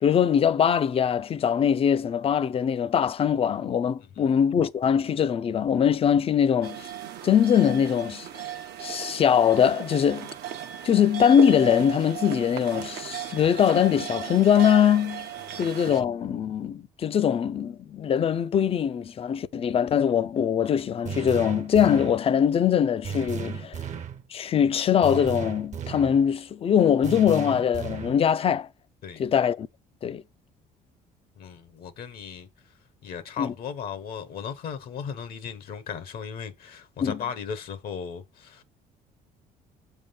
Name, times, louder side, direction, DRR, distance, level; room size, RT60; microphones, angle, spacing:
voice 1, 0.0-6.9 7.2-8.5 8.8-10.3 10.8-15.3 15.6-23.8 24.3-28.7 29.2-29.7 30.0-30.2 33.4-33.5 37.0-37.2, left 8 dB, 35° left, 0.4 m, -22 dB
sound 1, 6.6-16.0, right 11 dB, 75° right, 0.7 m, -36 dB
sound 2, 21.1-22.3 23.0-24.2 25.0-26.2 27.0-28.2, right 7 dB, 45° right, 0.7 m, -35 dB
voice 2, 31.4-32.7 33.0-38.6, left 7 dB, 60° left, 0.9 m, -36 dB
7.2 x 3.6 x 5.5 m
cardioid pair, 110°, 17 cm